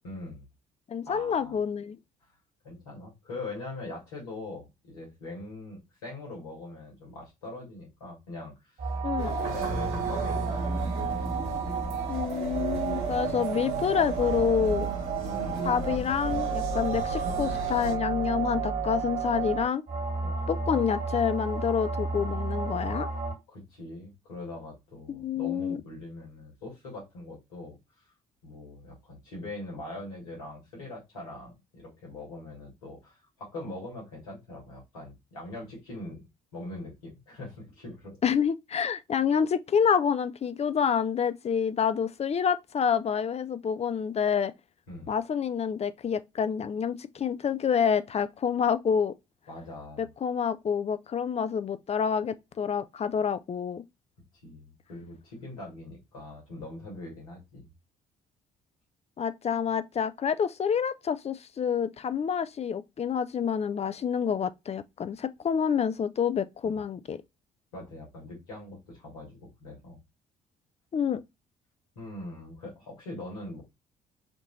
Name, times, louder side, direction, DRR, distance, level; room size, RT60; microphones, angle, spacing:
voice 1, 0.0-0.5 1.0-1.6 2.6-8.9 9.2-11.1 15.3-15.7 20.2-20.7 23.5-27.8 28.4-36.2 36.5-38.2 44.9-45.1 49.5-50.1 54.4-57.7 66.6-66.8 67.7-70.0 72.0-73.6, left 2 dB, 85° left, 2.3 m, -42 dB
voice 2, 0.9-2.0 9.0-9.3 12.1-14.9 15.6-19.8 20.5-23.1 25.1-25.8 38.2-44.5 45.1-49.1 50.0-53.8 59.2-67.2 70.9-71.2, left 7 dB, 35° left, 0.6 m, -28 dB
sound 1, 8.8-23.3, right 5 dB, 55° right, 1.9 m, -32 dB
sound 2, 9.2-17.9, right 2 dB, 85° right, 1.5 m, -35 dB
4.3 x 3.0 x 4.0 m
hypercardioid pair, 50°, 18 cm